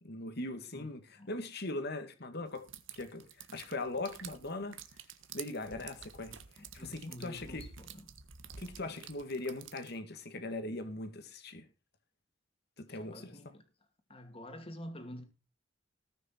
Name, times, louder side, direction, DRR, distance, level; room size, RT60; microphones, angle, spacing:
voice 1, 0.0-2.7 2.9-3.2 3.5-4.8 5.3-6.3 6.7-7.7 8.6-11.7 12.8-13.4, left 2 dB, 55° left, 2.0 m, -40 dB
sound 1, 2.5-10.0, right 7 dB, 80° right, 1.5 m, -50 dB
voice 2, 6.6-8.2 8.8-9.0 12.9-13.7 14.1-15.2, equal, 30° left, 2.6 m, -48 dB
19.0 x 6.6 x 4.5 m
head